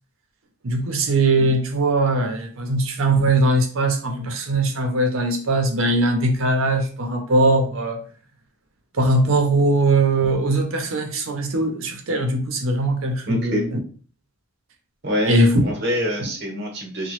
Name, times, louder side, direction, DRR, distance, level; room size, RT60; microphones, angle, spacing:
voice 1, 0.6-8.0 8.9-13.8 15.3-15.6 16.2-16.3, right 2 dB, 80° right, 0.7 m, -20 dB
voice 2, 13.3-13.7 15.0-17.1, equal, 55° right, 0.9 m, -25 dB
2.8 x 2.2 x 3.1 m
head